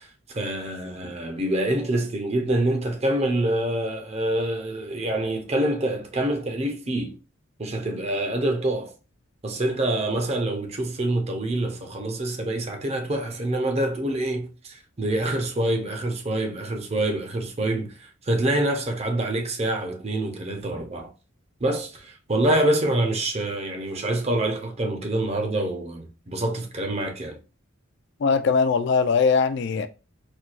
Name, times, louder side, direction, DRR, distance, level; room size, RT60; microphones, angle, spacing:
voice 1, 0.0-7.2 7.6-8.9 9.4-21.1 21.6-27.4, right 1 dB, 30° right, 0.6 m, -26 dB
voice 2, 28.2-29.9, left 5 dB, 55° left, 0.4 m, -21 dB
4.4 x 2.3 x 2.4 m
head